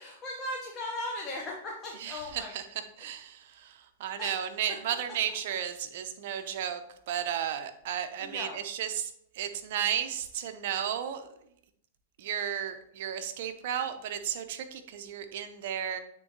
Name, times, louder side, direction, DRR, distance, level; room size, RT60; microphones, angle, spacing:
voice 1, 0.0-2.5 4.2-4.4 6.3-6.5 8.2-8.6, left 1 dB, 25° left, -2 dB, 1.1 m, -38 dB
voice 2, 2.0-11.3 12.2-16.0, right 9 dB, 60° right, 8 dB, 0.8 m, -34 dB
8.9 x 3.8 x 3.0 m, 0.71 s
hypercardioid pair, 115°, 0 cm